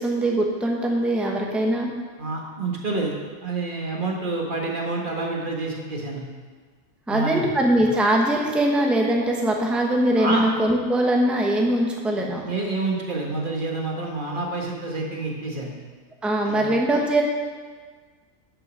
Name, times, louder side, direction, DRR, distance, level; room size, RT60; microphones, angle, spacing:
voice 1, 0.0-1.9 7.1-12.5 16.2-17.2, right 1 dB, ahead, 0 dB, 1.0 m, -22 dB
voice 2, 2.2-3.1 3.4-6.3 7.1-7.5 10.2-10.4 12.1-15.7 16.5-16.7, right 3 dB, 35° right, -1 dB, 1.6 m, -28 dB
10.5 x 6.1 x 6.2 m, 1.5 s
omnidirectional pair, 1.5 m